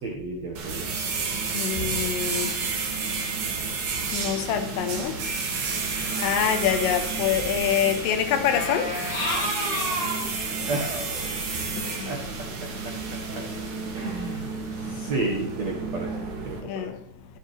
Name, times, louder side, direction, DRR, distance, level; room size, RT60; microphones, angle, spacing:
voice 1, 0.0-1.2 6.0-6.2 10.7-11.5 12.0-12.2 12.8-12.9 13.9-14.5 14.8-16.1 16.4-16.9, right 2 dB, 85° right, 1.5 m, -32 dB
sound 1, 0.6-16.6, right 4 dB, 55° right, 3.9 m, -31 dB
voice 2, 1.5-2.5 4.1-5.1 6.2-8.9 11.8-12.1 16.7-16.9, left 9 dB, 85° left, 4.0 m, -25 dB
sound 2, 5.9-7.1 8.4-10.2 11.1-11.2, left 1 dB, 25° left, 1.7 m, -31 dB
21.0 x 7.6 x 3.3 m
omnidirectional pair, 5.7 m